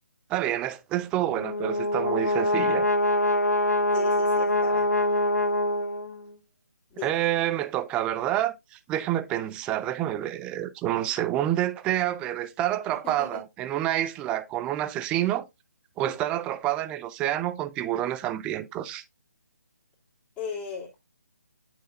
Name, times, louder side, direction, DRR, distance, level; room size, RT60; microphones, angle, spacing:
voice 1, 0.3-2.9 7.0-15.4 16.0-19.0, right 13 dB, 10° right, 0.4 m, -28 dB
Brass instrument, 1.2-6.3, left 1 dB, 75° left, 0.9 m, -24 dB
voice 2, 3.9-4.9 6.9-7.1 13.2-13.4 20.4-21.0, left 5 dB, 15° left, 2.8 m, -37 dB
9.1 x 6.3 x 2.5 m
figure-of-eight pair, 140°, 9 cm